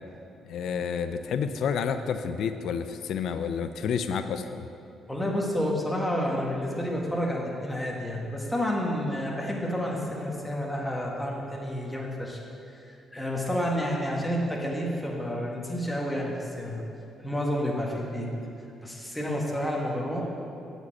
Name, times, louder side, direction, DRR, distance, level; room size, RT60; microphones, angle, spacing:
voice 1, 0.5-4.7, left 6 dB, 75° left, 10 dB, 0.4 m, -30 dB
voice 2, 5.1-12.4 12.7-16.8 17.2-18.3 18.8-20.3, equal, 10° left, -2 dB, 1.6 m, -30 dB
8.1 x 5.1 x 7.5 m, 2.8 s
cardioid pair, 90°, 0 cm